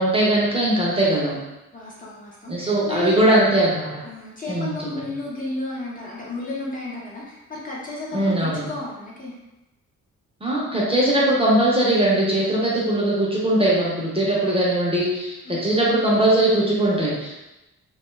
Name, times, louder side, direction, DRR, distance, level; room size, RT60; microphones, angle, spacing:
voice 1, 0.0-1.4 2.5-3.9 4.5-4.7 8.1-8.7 10.4-17.4, right 1 dB, 20° right, -5 dB, 0.5 m, -20 dB
voice 2, 1.7-3.2 4.0-9.4 15.4-15.6, left 2 dB, 25° left, -5 dB, 0.5 m, -33 dB
2.6 x 2.2 x 3.0 m, 0.98 s
wide cardioid pair, 165°, 31 cm